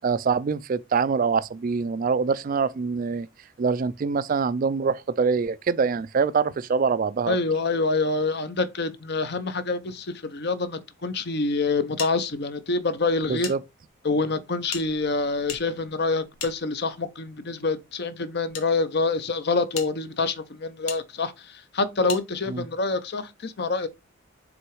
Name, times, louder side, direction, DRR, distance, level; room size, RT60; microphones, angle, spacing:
voice 1, 0.0-3.3 3.6-7.4 13.3-13.6 22.5-22.7, right 5 dB, 40° right, 0.3 m, -24 dB
voice 2, 7.3-13.5 14.0-23.9, left 3 dB, 50° left, 0.7 m, -26 dB
sound 1, 12.0-13.6 13.8-13.9 14.7-17.1 17.9-18.7 19.2-19.3 19.7-19.9 20.9-21.0 22.1-22.2, left 7 dB, 90° left, 1.5 m, -38 dB
6.1 x 3.8 x 4.6 m
head